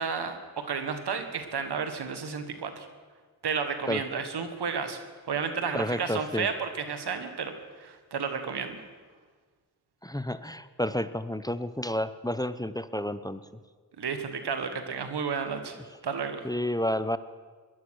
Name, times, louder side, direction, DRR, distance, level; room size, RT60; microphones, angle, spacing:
voice 1, 0.0-2.9 3.4-5.0 5.3-7.5 7.8-8.8 14.0-15.8 16.0-16.4, right 6 dB, 85° right, 8 dB, 1.5 m, -32 dB
voice 2, 5.7-6.5 10.0-13.4 15.8-15.9 16.4-17.2, left 1 dB, 10° left, 13 dB, 0.7 m, -30 dB
18.5 x 11.5 x 6.3 m, 1.5 s
cardioid pair, 40°, 39 cm